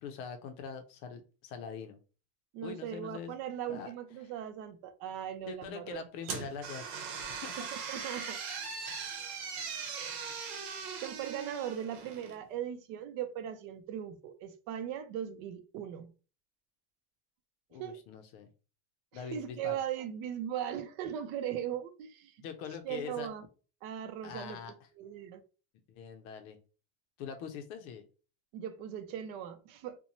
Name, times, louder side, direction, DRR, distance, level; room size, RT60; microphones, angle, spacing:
voice 1, 0.0-2.0 2.6-3.4 3.7-3.9 4.2-4.3 5.5-6.9 7.3-7.7 17.7-18.5 19.1-19.8 22.4-23.3 24.2-24.7 25.9-26.6 27.2-28.0, left 6 dB, 60° left, 0.5 m, -43 dB
voice 2, 2.5-6.1 7.6-8.4 11.0-16.1 17.8-18.0 19.1-22.3 22.8-23.4 23.8-24.6 25.0-25.4 28.5-30.0, right 10 dB, 60° right, 0.5 m, -39 dB
sound 1, 6.2-12.4, right 6 dB, 85° right, 0.9 m, -40 dB
2.6 x 2.1 x 2.8 m
cardioid pair, 170°, 46 cm